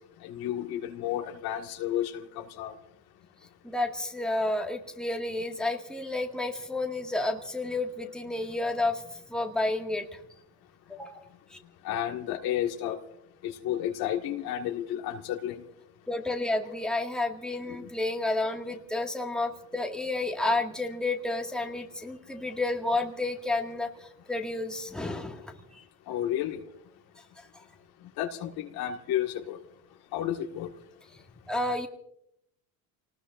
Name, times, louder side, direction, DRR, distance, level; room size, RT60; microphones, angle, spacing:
voice 1, 0.2-2.8 11.8-13.0 13.4-15.6 16.2-16.3 17.8-17.9 26.1-26.6 28.2-29.6 30.1-30.7, left 11 dB, 70° left, 4 dB, 1.8 m, -32 dB
voice 2, 3.6-10.1 10.9-11.3 11.5-11.6 16.1-25.8 31.5-31.9, left 2 dB, ahead, 1 dB, 1.9 m, -31 dB
29.0 x 19.5 x 2.5 m, 0.74 s
cardioid pair, 110°, 39 cm